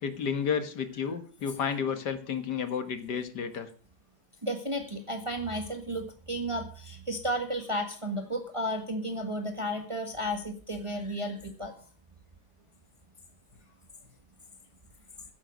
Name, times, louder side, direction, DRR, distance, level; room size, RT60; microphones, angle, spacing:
voice 1, 0.0-3.7, left 7 dB, 70° left, 10 dB, 2.0 m, -31 dB
voice 2, 4.4-11.7, equal, 20° right, 5 dB, 1.5 m, -33 dB
14.5 x 11.0 x 5.2 m, 0.41 s
omnidirectional pair, 1.9 m